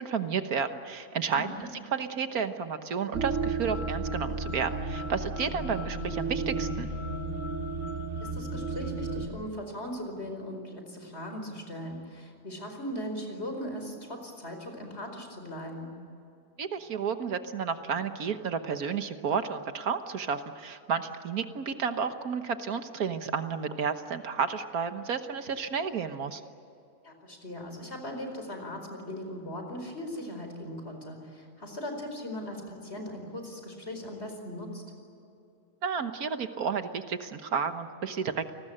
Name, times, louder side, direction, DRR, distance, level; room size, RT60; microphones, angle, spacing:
voice 1, 0.0-1.5 1.9-6.9 16.6-26.4 35.8-38.5, right 6 dB, 70° right, 9 dB, 1.7 m, -31 dB
voice 2, 1.3-1.7 8.2-16.0 27.0-34.8, equal, 45° left, 4 dB, 5.0 m, -39 dB
sound 1, 3.1-9.3, right 3 dB, 55° right, 2.4 m, -33 dB
29.0 x 20.0 x 8.9 m, 2.7 s
omnidirectional pair, 1.6 m